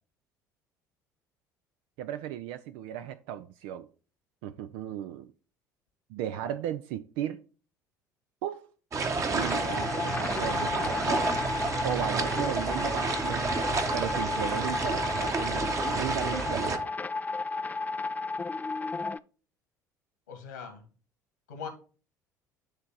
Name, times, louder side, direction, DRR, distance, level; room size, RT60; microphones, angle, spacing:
voice 1, 2.0-3.9 4.4-5.3 6.1-7.4 8.4-8.7 9.2-11.3 11.8-13.7 13.9-16.9, right 11 dB, 60° right, 10 dB, 0.4 m, -36 dB
sound 1, 8.9-16.8, right 4 dB, 35° right, 1.2 m, -30 dB
sound 2, 9.3-19.2, left 3 dB, 15° left, 0.4 m, -33 dB
Wind instrument woodwind instrument, 9.5-13.8, right 1 dB, 80° right, 4.6 m, -49 dB
voice 2, 20.3-20.9 21.5-21.7, left 6 dB, 80° left, 5 dB, 1.7 m, -41 dB
10.0 x 3.4 x 4.6 m, 0.37 s
figure-of-eight pair, 60°, 9 cm